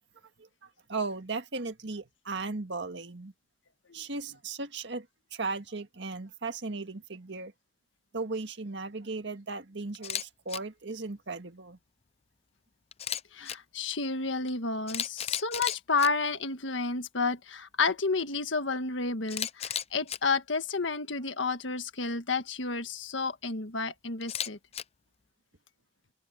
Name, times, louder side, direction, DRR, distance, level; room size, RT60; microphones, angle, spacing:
voice 1, 0.9-3.3 3.9-5.1 5.3-7.5 8.1-11.8, right 3 dB, 70° right, 1.8 m, -36 dB
Camera, 9.9-10.2 10.5-10.6 12.9-13.6 14.5-14.6 14.9-16.1 19.3-20.2 24.2-24.8, left 9 dB, 35° left, 0.5 m, -34 dB
voice 2, 13.3-24.6, left 4 dB, 85° left, 1.6 m, -31 dB
head